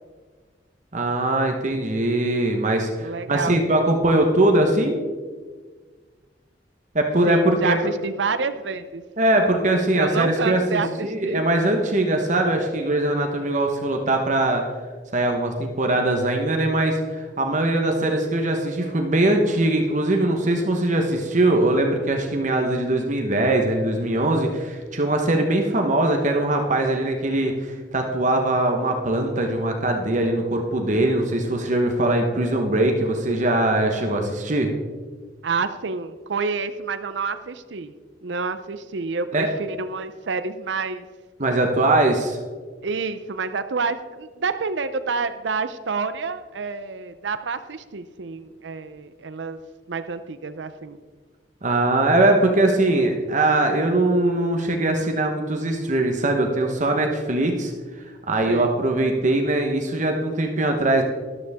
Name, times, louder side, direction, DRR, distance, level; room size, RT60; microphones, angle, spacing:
voice 1, 0.9-5.0 6.9-7.8 9.2-14.6 15.1-34.7 39.3-39.5 41.4-42.4 51.6-57.7 58.3-61.0, right 1 dB, 45° right, 3 dB, 1.2 m, -21 dB
voice 2, 3.0-3.6 7.3-9.0 9.3-9.4 10.0-11.4 26.1-26.2 35.4-37.9 38.2-41.1 42.8-49.6 49.9-51.0 58.5-58.7, right 4 dB, 80° right, 11 dB, 0.6 m, -28 dB
13.5 x 12.5 x 3.6 m, 1.5 s
head